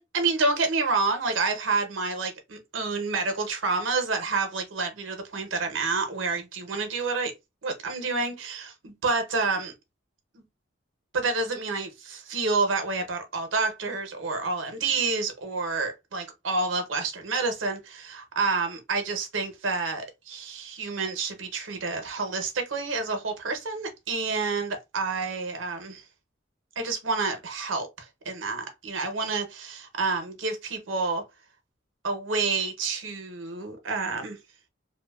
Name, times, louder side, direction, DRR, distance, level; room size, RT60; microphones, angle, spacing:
voice 1, 0.0-7.3 7.6-9.7 10.3-10.4 11.1-26.1 26.8-31.2 32.0-34.4, right 4 dB, 85° right, 0.7 m, -29 dB
2.7 x 2.1 x 2.2 m
head